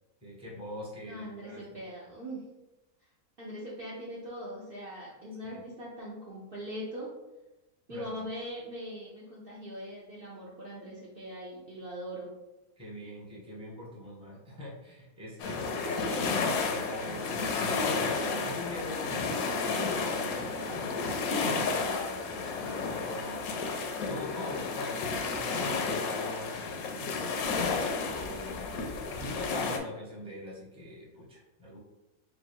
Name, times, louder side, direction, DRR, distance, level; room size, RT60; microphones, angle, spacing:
voice 1, 0.2-1.6 2.1-2.2 5.4-5.6 7.9-8.2 12.8-16.0 16.6-20.8 21.3-27.7 28.2-31.8, left 1 dB, 5° right, -6 dB, 0.8 m, -43 dB
voice 2, 1.1-2.4 3.4-7.1 7.9-12.3 15.8-16.2, equal, 45° right, -7 dB, 0.8 m, -41 dB
sound 1, 15.4-29.8, left 4 dB, 75° left, 1.0 m, -32 dB
3.1 x 2.5 x 4.3 m, 1.0 s
omnidirectional pair, 1.5 m